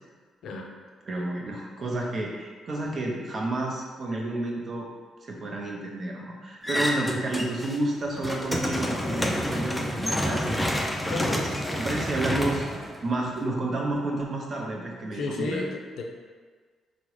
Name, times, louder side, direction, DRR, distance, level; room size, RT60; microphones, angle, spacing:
voice 1, 0.4-0.7 11.1-11.5 15.1-16.0, left 3 dB, 75° left, 1 dB, 0.4 m, -32 dB
voice 2, 1.1-4.9 5.2-10.7 11.1-11.5 11.8-15.6, right 2 dB, 45° right, -2 dB, 0.6 m, -30 dB
sound 1, 6.6-7.8 8.1-13.4, equal, 10° left, 0.3 m, -29 dB
3.5 x 2.0 x 3.0 m, 1.5 s
cardioid pair, 90°, 0 cm